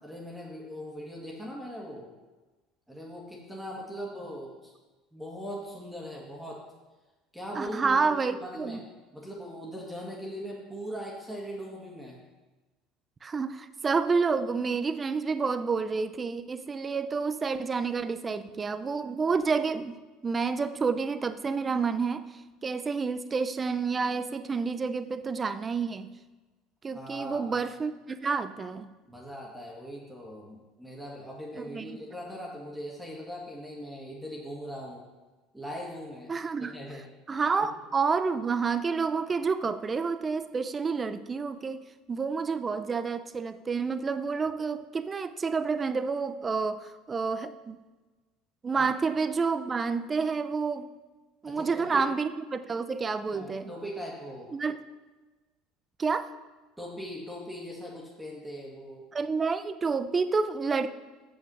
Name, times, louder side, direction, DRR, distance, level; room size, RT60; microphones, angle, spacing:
voice 1, 0.0-2.1 2.9-4.7 5.1-6.6 7.3-8.8 9.1-12.2 26.9-27.6 29.1-35.1 35.5-36.3 36.6-37.0 48.8-48.9 51.5-52.0 53.3-54.5 56.8-59.0, equal, 5° right, -3 dB, 1.9 m, -40 dB
voice 2, 7.6-8.8 13.2-19.9 20.2-22.2 22.6-26.1 26.8-28.9 31.6-32.0 36.3-36.8 37.3-41.8 42.1-47.8 48.6-50.9 51.4-53.7 54.5-54.8 56.0-56.3 59.1-60.9, right 5 dB, 25° right, 12 dB, 0.5 m, -29 dB
7.3 x 5.7 x 6.2 m, 1.2 s
supercardioid pair, 100°, 0 cm